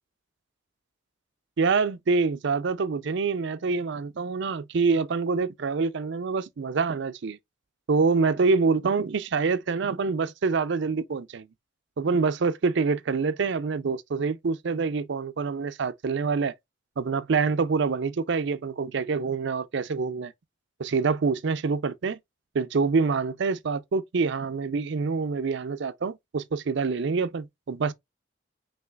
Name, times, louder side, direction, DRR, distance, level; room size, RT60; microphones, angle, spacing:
voice 1, 1.6-7.4 7.9-11.5 12.0-16.5 17.0-20.3 20.8-22.2 22.5-27.9, right 4 dB, 60° right, 0.5 m, -26 dB
5.6 x 2.9 x 2.3 m
head